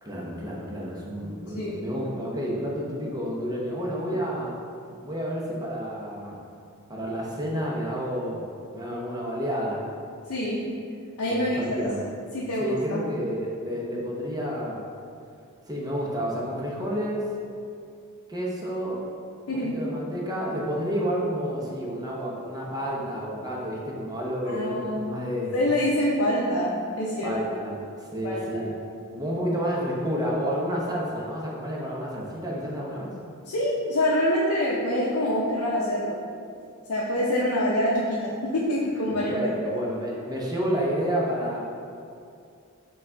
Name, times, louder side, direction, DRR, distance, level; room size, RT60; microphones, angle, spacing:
voice 1, 0.0-4.5 5.0-6.4 6.9-8.5 8.7-9.8 11.3-12.0 12.6-14.9 15.7-17.2 18.3-19.0 19.5-25.5 27.2-27.8 28.1-28.7 29.1-33.1 39.1-41.6, equal, 15° right, -4 dB, 0.6 m, -30 dB
voice 2, 1.5-1.9 10.3-10.7 11.2-11.8 12.3-13.0 19.5-19.8 24.5-25.0 25.5-27.3 28.2-28.6 33.5-36.1 36.9-39.3, left 1 dB, 75° left, -6 dB, 0.5 m, -25 dB
5.6 x 2.3 x 3.8 m, 2.4 s
head